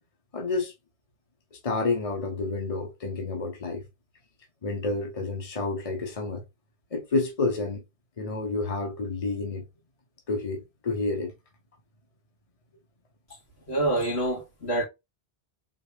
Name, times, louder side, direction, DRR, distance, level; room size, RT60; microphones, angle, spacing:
voice 1, 0.3-0.7 1.5-3.8 4.6-6.4 6.9-7.8 8.2-9.7 10.3-11.3, left 3 dB, 35° left, 1.1 m, -29 dB
voice 2, 13.7-14.8, right 2 dB, 80° left, 3.0 m, -26 dB
4.4 x 3.4 x 3.4 m
omnidirectional pair, 1.1 m